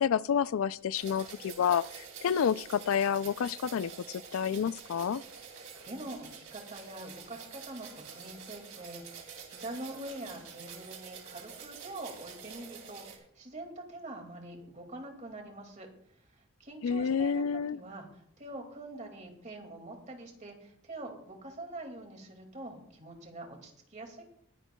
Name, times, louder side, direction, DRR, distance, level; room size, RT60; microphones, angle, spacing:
voice 1, 0.0-5.2 16.8-17.8, left 7 dB, 70° left, 0.4 m, -29 dB
sound 1, 0.9-13.2, right 6 dB, 70° right, 2.8 m, -48 dB
voice 2, 5.5-15.9 16.6-17.4 17.7-24.2, right 1 dB, 35° right, 2.2 m, -44 dB
21.0 x 10.5 x 2.3 m
head